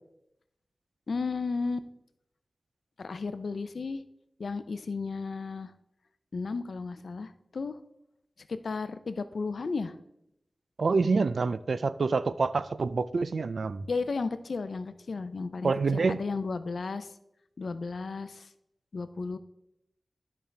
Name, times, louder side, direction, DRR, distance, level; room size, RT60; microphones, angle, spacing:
voice 1, 1.1-1.9 3.0-4.0 4.4-5.7 6.3-7.8 8.5-9.9 13.9-17.1 17.6-18.5 18.9-19.4, left 4 dB, 90° left, 0.5 m, -34 dB
voice 2, 10.8-13.9 15.6-16.2, right 4 dB, 85° right, 0.3 m, -27 dB
12.5 x 5.2 x 3.3 m
wide cardioid pair, 80°, 0 cm